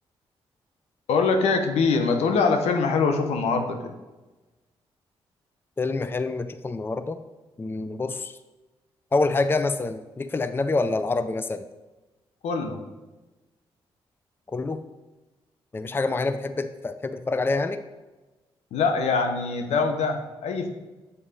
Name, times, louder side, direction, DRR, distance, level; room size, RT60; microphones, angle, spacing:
voice 1, 1.1-3.8 12.4-12.8 18.7-20.7, left 4 dB, 80° left, 5 dB, 0.9 m, -23 dB
voice 2, 5.8-7.2 7.6-8.4 9.1-11.6 14.5-14.8 15.7-17.8, left 3 dB, 20° left, 11 dB, 0.4 m, -26 dB
7.0 x 4.2 x 5.1 m, 1.1 s
supercardioid pair, 60°, 11 cm